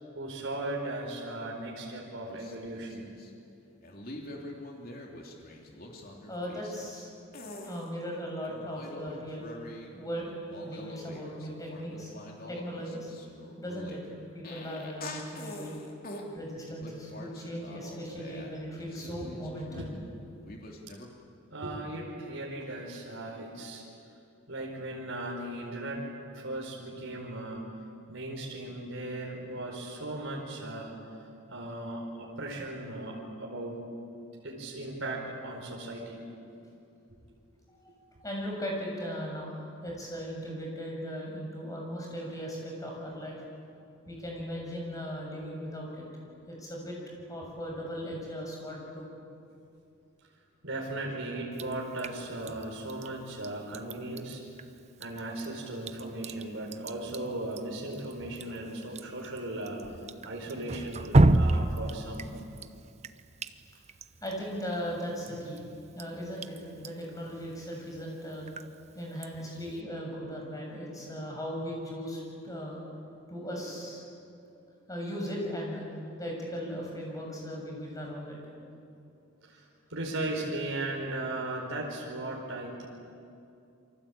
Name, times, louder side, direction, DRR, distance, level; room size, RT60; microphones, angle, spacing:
voice 1, 0.1-3.1 18.1-18.4 19.1-19.9 20.9-21.0 21.5-23.8 24.5-26.1 26.3-27.6 28.1-30.9 31.5-33.9 34.4-36.2 50.6-54.4 55.0-62.3 79.4-79.6 79.9-82.9, right 2 dB, 65° right, -2 dB, 4.6 m, -37 dB
sound 1, 2.3-3.3 3.8-7.1 7.3-7.9 8.5-9.9 10.2-16.3 16.8-20.1 20.5-21.1, left 1 dB, 45° left, 3.3 m, -45 dB
voice 2, 6.3-7.1 7.6-9.5 9.9-10.3 10.6-12.1 12.5-13.1 13.6-14.0 14.3-15.8 16.3-19.9 37.8-37.9 38.2-43.4 44.1-46.1 46.5-47.0 47.3-49.1 58.5-58.6 64.2-65.6 65.9-68.5 68.9-72.8 73.3-74.0 74.9-75.8 76.2-78.4, equal, 15° left, -1 dB, 6.9 m, -38 dB
Drip, 51.5-69.8, right 2 dB, 30° right, 0.8 m, -33 dB
28.5 x 24.0 x 8.7 m, 2.6 s
head